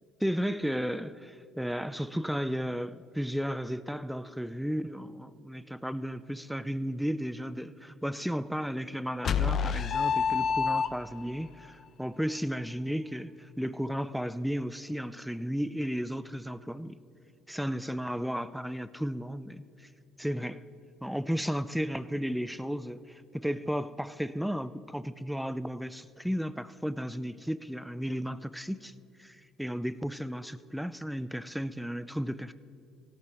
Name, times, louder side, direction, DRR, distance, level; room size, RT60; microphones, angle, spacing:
voice 1, 0.2-17.0 17.5-19.9 20.2-20.6 21.0-28.9 29.2-32.5, equal, ahead, 0.4 m, -34 dB
sound 1, 9.2-11.3, left 6 dB, 50° left, 0.6 m, -27 dB
16.5 x 13.0 x 3.0 m
supercardioid pair, 90°, 0 cm